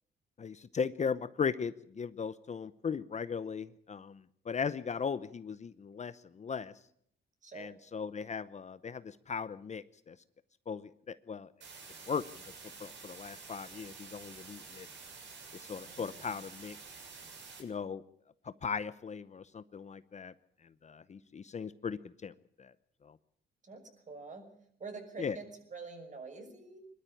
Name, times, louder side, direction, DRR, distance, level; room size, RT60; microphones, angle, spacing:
voice 1, 0.4-6.7 7.5-10.2 10.7-11.5 12.1-12.2 12.8-14.9 15.5-16.8 17.6-18.0 18.4-20.3 20.8-22.7 23.0-23.1 25.2-25.4, left 6 dB, 35° left, 14 dB, 0.8 m, -38 dB
voice 2, 7.4-7.7 15.9-16.4 23.6-24.5 24.8-26.8, right 4 dB, 40° right, 5 dB, 6.3 m, -46 dB
sound 1, 11.6-17.6, right 4 dB, 65° right, 7.2 m, -50 dB
22.0 x 12.5 x 9.9 m, 0.71 s
cardioid pair, 90°, 20 cm